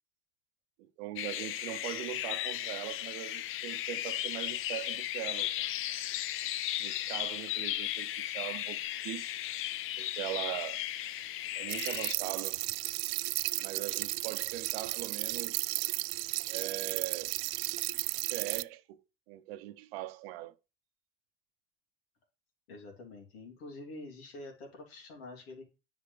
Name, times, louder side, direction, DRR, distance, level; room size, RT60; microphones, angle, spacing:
voice 1, 0.8-5.7 6.8-9.3 10.0-10.8 11.6-12.6 13.6-15.7 16.5-17.4 17.9-19.0 19.3-20.5, right 15 dB, 80° right, 0.8 m, -41 dB
sound 1, 1.2-12.1, left 13 dB, 45° left, 0.5 m, -36 dB
sound 2, 11.7-18.6, right 22 dB, 65° right, 0.4 m, -34 dB
voice 2, 22.7-25.6, left 2 dB, 90° left, 3.2 m, -47 dB
9.9 x 5.7 x 3.4 m
supercardioid pair, 105°, 30 cm